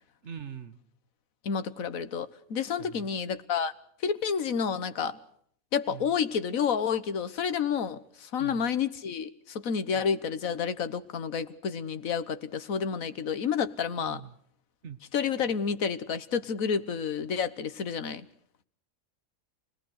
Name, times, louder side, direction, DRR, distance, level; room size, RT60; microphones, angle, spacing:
voice 1, 0.2-0.8 2.8-3.1 5.9-6.1 8.4-8.7 9.9-10.0 14.0-14.4 14.8-15.0, right 8 dB, 55° right, 1.7 m, -43 dB
voice 2, 1.4-3.7 4.0-5.2 5.7-14.2 15.1-18.3, left 6 dB, 75° left, 1.6 m, -30 dB
28.0 x 19.0 x 6.5 m
omnidirectional pair, 1.4 m